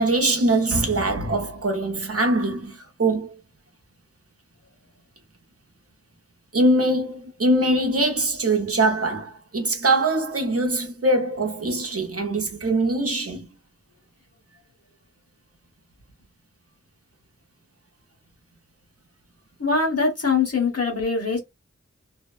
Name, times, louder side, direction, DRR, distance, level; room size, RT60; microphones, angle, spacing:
voice 1, 0.0-3.3 6.5-13.5, right 2 dB, 50° right, 0.7 m, -22 dB
voice 2, 19.6-21.4, left 4 dB, 55° left, 1.3 m, -22 dB
2.7 x 2.1 x 2.4 m
wide cardioid pair, 45°, 30 cm